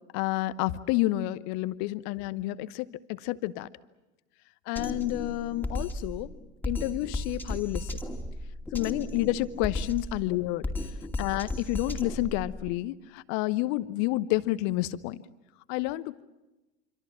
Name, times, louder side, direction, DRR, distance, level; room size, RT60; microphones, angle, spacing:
voice 1, 0.1-3.7 4.7-6.3 6.7-7.9 8.7-10.6 11.2-15.2 15.7-16.2, left 17 dB, 50° left, 17 dB, 1.0 m, -29 dB
Drum kit, 4.8-12.7, left 1 dB, 5° left, 2.5 m, -35 dB
26.0 x 25.5 x 7.4 m, 1.0 s
figure-of-eight pair, 75°, 36 cm